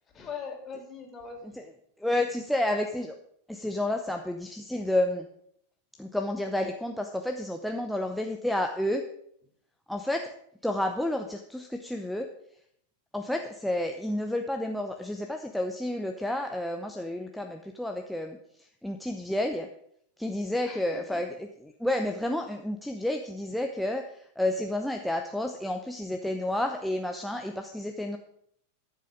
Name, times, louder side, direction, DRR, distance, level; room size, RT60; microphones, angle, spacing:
voice 1, 0.1-1.6 20.6-21.2, left 5 dB, 25° left, 2 dB, 3.1 m, -41 dB
voice 2, 2.0-3.1 3.5-5.3 6.0-9.0 9.9-10.3 10.6-12.3 13.1-19.7 20.2-28.2, left 1 dB, ahead, 3 dB, 0.8 m, -30 dB
13.5 x 7.6 x 5.2 m, 0.70 s
figure-of-eight pair, 90°, 0 cm